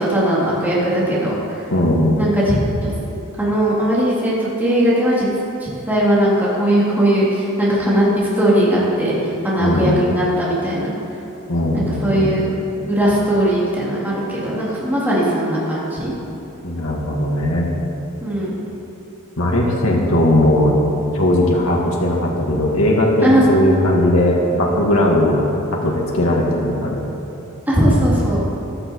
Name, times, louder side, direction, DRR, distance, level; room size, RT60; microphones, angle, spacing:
voice 1, 0.0-1.6 2.2-2.9 3.4-5.3 5.6-9.1 9.4-10.9 11.7-12.5 12.8-16.1 18.2-18.6 23.2-23.5 27.7-28.4, right 1 dB, 10° right, -8 dB, 3.4 m, -18 dB
voice 2, 1.7-2.2 9.6-10.0 11.5-12.3 16.6-17.7 19.4-20.8 21.1-25.5 25.7-27.0, left 1 dB, 80° left, -2 dB, 2.2 m, -18 dB
15.5 x 12.0 x 4.8 m, 2.9 s
head